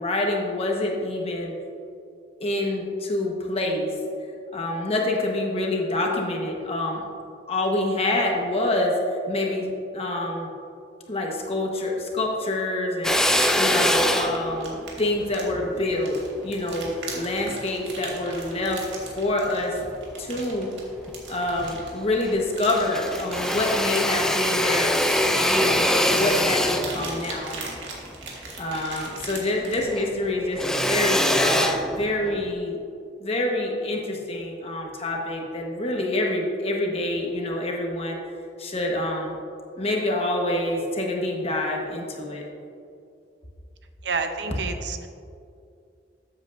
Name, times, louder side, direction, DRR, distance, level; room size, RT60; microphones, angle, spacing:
voice 1, 0.0-1.5 2.4-3.9 4.5-7.0 7.5-9.7 9.9-10.5 11.1-13.2 13.6-19.8 20.2-20.7 21.3-25.0 25.3-27.6 28.6-32.8 33.2-38.2 38.6-39.4 39.8-42.4, left 1 dB, 35° left, 0 dB, 1.3 m, -26 dB
Drill, 13.0-17.6 18.1-19.3 19.8-20.7 21.1-21.2 21.4-22.4 22.7-29.4 29.7-32.5, left 1 dB, 5° left, 0.4 m, -25 dB
sound 1, 13.3-29.9, right 4 dB, 85° right, 1.8 m, -40 dB
voice 2, 44.0-45.1, right 4 dB, 65° right, 6 dB, 0.7 m, -29 dB
13.5 x 8.0 x 2.6 m, 2.5 s
head